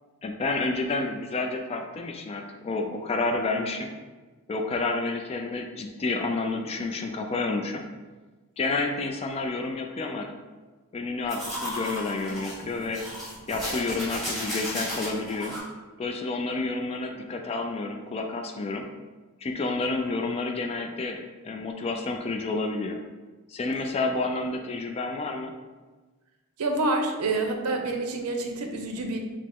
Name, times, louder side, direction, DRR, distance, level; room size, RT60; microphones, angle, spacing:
voice 1, 0.2-3.9 4.5-7.8 8.6-10.3 10.9-13.0 13.5-15.6 16.0-18.9 19.4-23.0 23.5-25.5, left 3 dB, 25° left, 4 dB, 0.3 m, -30 dB
sound 1, 11.3-15.6, equal, ahead, 1.3 m, -34 dB
voice 2, 26.6-29.2, right 2 dB, 90° right, 4 dB, 0.6 m, -27 dB
5.1 x 2.0 x 3.6 m, 1.3 s
head